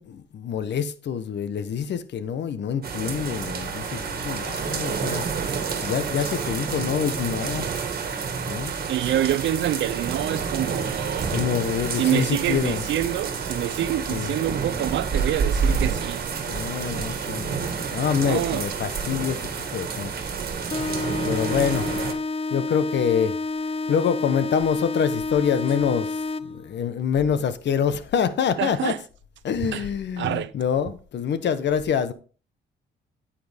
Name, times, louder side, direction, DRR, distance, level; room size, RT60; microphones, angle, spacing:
voice 1, 0.0-5.2 5.7-7.7 8.5-8.7 11.2-12.8 14.1-14.3 16.5-20.1 21.2-21.9 22.5-23.4 23.9-28.9 29.4-32.1, left 7 dB, 60° left, 1.1 m, -26 dB
sound 1, 2.8-22.1, right 5 dB, 50° right, 1.9 m, -29 dB
voice 2, 8.9-11.4 11.9-16.3 18.2-18.7 28.6-29.0 29.6-29.9 30.2-30.5, right 12 dB, 70° right, 0.6 m, -26 dB
sound 2, 20.7-26.7, left 3 dB, 30° left, 0.4 m, -29 dB
9.4 x 8.8 x 3.5 m
cardioid pair, 90°, 20 cm